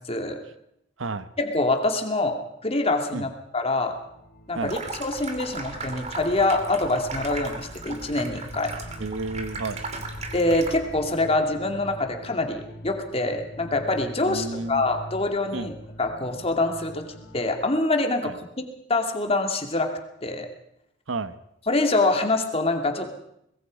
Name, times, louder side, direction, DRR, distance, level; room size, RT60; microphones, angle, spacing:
voice 1, 0.1-0.4 1.4-2.4 2.6-4.0 4.5-8.7 10.3-17.1 17.3-18.3 18.9-19.9 20.2-20.5 21.7-23.1, left 2 dB, 30° left, 4 dB, 2.4 m, -25 dB
sound 1, 3.5-17.6, equal, 55° left, 2.4 m, -44 dB
Water tap faucet / Sink (filling or washing), 4.6-11.0, right 3 dB, 35° right, 2.6 m, -36 dB
voice 2, 9.0-9.8 14.3-14.8 15.5-15.7 18.2-18.3 21.1-21.4, right 3 dB, 90° right, 13 dB, 1.1 m, -31 dB
23.5 x 21.0 x 5.3 m, 0.77 s
head